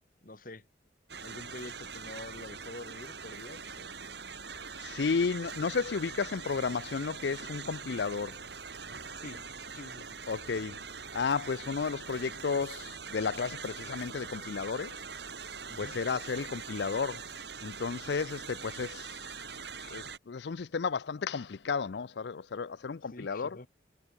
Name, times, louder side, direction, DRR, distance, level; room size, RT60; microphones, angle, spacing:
voice 1, 0.2-0.7 1.2-3.9 9.2-9.4 9.7-10.2 15.7-16.0 19.8-20.1 23.1-23.7, left 2 dB, 50° left, 2.0 m, -47 dB
sound 1, 1.1-20.2, right 5 dB, 65° right, 6.4 m, -43 dB
voice 2, 4.8-8.4 10.3-10.8 11.1-15.0 15.8-17.2 17.6-19.2 19.9-23.6, left 5 dB, 65° left, 0.5 m, -33 dB
head